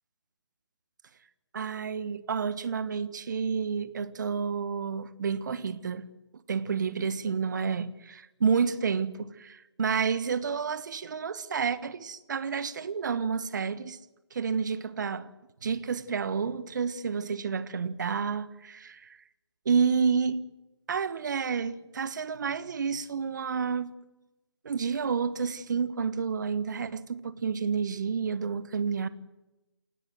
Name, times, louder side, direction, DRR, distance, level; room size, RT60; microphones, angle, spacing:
voice 1, 1.5-6.1 6.5-14.0 14.3-15.3 15.6-19.2 19.6-20.4 20.9-23.9 24.6-29.1, right 6 dB, 40° right, 1.4 m, -30 dB
29.0 x 16.5 x 7.7 m
figure-of-eight pair, 150°, 15 cm